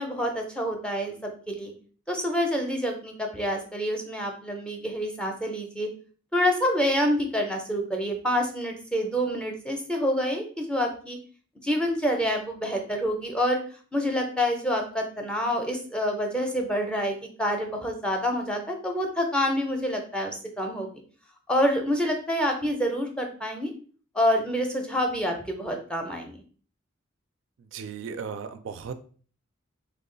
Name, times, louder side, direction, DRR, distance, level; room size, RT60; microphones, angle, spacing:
voice 1, 0.0-1.7 2.1-5.9 6.3-11.2 11.6-13.6 13.9-20.9 21.5-23.7 24.1-26.4, equal, 5° left, 2 dB, 0.5 m, -27 dB
voice 2, 27.6-28.9, right 6 dB, 65° right, 10 dB, 0.3 m, -36 dB
3.5 x 2.3 x 3.7 m, 0.42 s
head